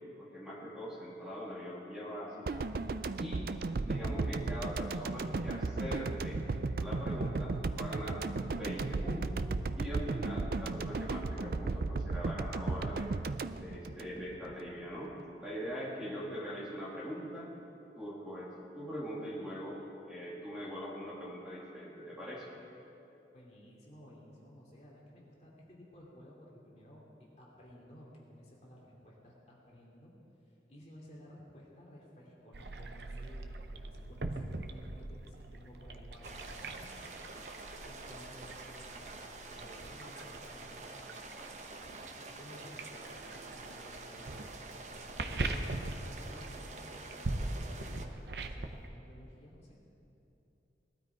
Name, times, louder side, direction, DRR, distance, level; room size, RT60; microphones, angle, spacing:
voice 1, 0.2-2.7 3.2-3.5 3.8-6.4 6.8-8.2 8.5-9.4 9.7-13.1 13.5-17.5 18.0-19.8 20.1-22.5, equal, 5° right, -7 dB, 2.5 m, -42 dB
sound 1, 2.5-14.6 14.9-15.1, right 3 dB, 55° right, 0.4 m, -35 dB
voice 2, 23.3-27.0 27.4-30.1 30.7-37.1 37.4-41.1 42.2-44.4 44.8-45.6 45.9-49.8, equal, 40° left, -4 dB, 2.6 m, -55 dB
sound 2, 32.5-48.9, right 2 dB, 75° right, 0.8 m, -42 dB
sound 3, 36.2-48.1, right 3 dB, 40° right, 0.9 m, -48 dB
19.0 x 12.5 x 4.6 m, 2.9 s
head